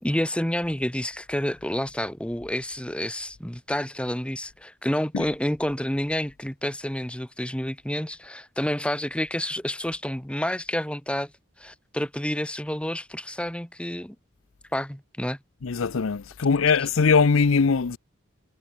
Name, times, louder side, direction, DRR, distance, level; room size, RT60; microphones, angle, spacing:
voice 1, 0.0-11.3 11.6-14.1 14.7-15.4, left 1 dB, 5° left, 1.6 m, -29 dB
voice 2, 15.6-18.0, left 5 dB, 70° left, 0.6 m, -21 dB
head